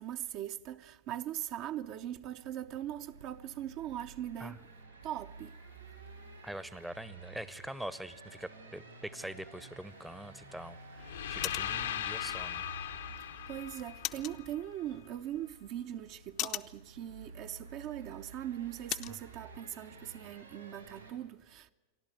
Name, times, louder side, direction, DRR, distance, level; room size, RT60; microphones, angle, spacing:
voice 1, 0.0-4.6 5.0-5.6 13.2-21.7, right 11 dB, 40° right, 0.7 m, -40 dB
sound 1, 1.5-21.1, right 3 dB, 80° right, 5.2 m, -53 dB
voice 2, 6.4-12.6, right 1 dB, 5° right, 0.8 m, -44 dB
sound 2, 9.8-19.2, left 14 dB, 40° left, 0.7 m, -45 dB
sound 3, 11.0-15.0, left 10 dB, 65° left, 0.9 m, -39 dB
28.0 x 12.0 x 9.4 m
figure-of-eight pair, 90°, 0 cm